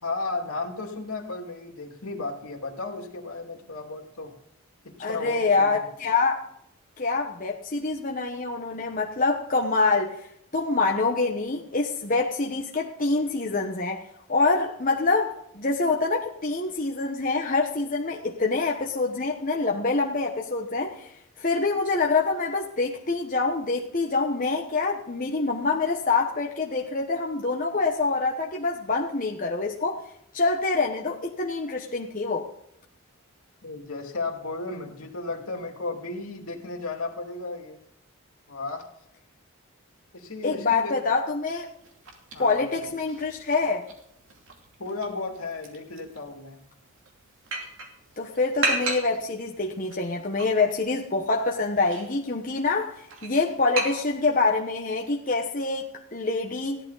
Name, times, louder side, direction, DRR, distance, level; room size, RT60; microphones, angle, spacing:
voice 1, 0.0-4.3 4.8-5.9 33.6-37.8 38.5-38.9 40.1-41.0 42.3-42.9 44.8-46.6, left 3 dB, 75° left, 2 dB, 2.5 m, -34 dB
voice 2, 5.0-6.4 7.0-10.3 10.5-14.0 14.3-30.0 30.3-32.5 40.4-41.7 42.4-43.8 48.2-56.8, left 3 dB, 35° left, 0 dB, 1.1 m, -26 dB
sound 1, 41.6-54.6, right 2 dB, 60° right, 2.7 m, -36 dB
16.5 x 11.5 x 4.0 m, 0.74 s
head